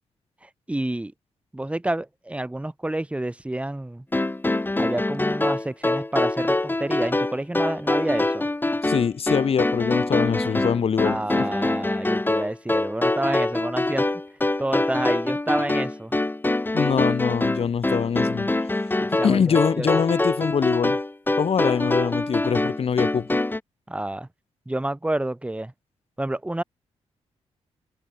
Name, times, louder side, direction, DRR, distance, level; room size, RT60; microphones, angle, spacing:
voice 1, 0.4-1.1 1.5-4.0 4.8-8.5 11.0-14.1 14.6-16.1 19.0-19.9 23.9-24.3 24.7-25.7 26.2-26.6, right 1 dB, 10° right, 2.3 m, -29 dB
sound 1, 4.1-23.6, left 2 dB, 15° left, 4.3 m, -24 dB
voice 2, 8.8-11.4 16.7-18.5 19.2-21.0 21.4-23.4, left 7 dB, 55° left, 2.7 m, -24 dB
cardioid pair, 80°, 12 cm